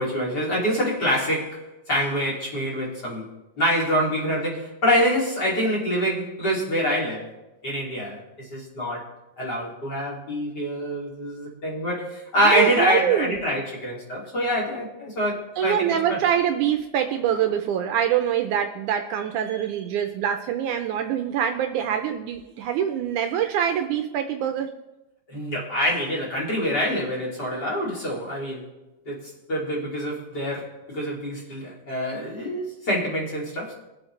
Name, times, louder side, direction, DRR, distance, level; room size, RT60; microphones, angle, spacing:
voice 1, 0.0-3.2 3.6-7.3 7.6-9.1 9.4-16.0 25.3-28.7 29.1-29.2 29.5-33.7, equal, 30° left, -4 dB, 3.1 m, -26 dB
voice 2, 12.5-13.4 15.6-24.7 31.9-32.0, right 9 dB, 75° right, 6 dB, 2.0 m, -24 dB
22.5 x 7.8 x 3.3 m, 1.0 s
omnidirectional pair, 3.9 m